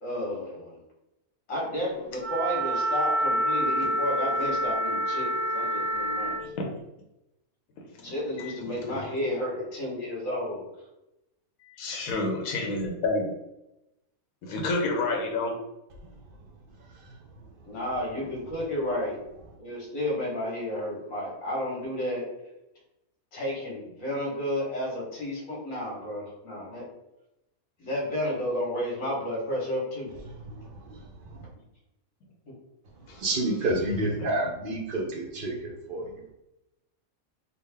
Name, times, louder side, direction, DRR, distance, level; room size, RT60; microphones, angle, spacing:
voice 1, 0.0-0.8 1.5-6.4 8.0-10.6 17.6-19.2 19.6-22.2 23.3-26.8 27.8-30.1, left 1 dB, 70° left, -4 dB, 1.7 m, -32 dB
Wind instrument woodwind instrument, 2.2-6.5, right 1 dB, 50° left, 0.4 m, -27 dB
voice 2, 7.9-9.2 11.6-13.3 14.4-15.5 33.1-33.2 34.2-34.3, left 2 dB, 85° left, 1 dB, 1.2 m, -30 dB
voice 3, 16.9-17.7 30.3-31.5 33.0-36.3, right 1 dB, 60° right, 0 dB, 0.6 m, -31 dB
3.7 x 2.2 x 3.3 m, 0.90 s
omnidirectional pair, 1.5 m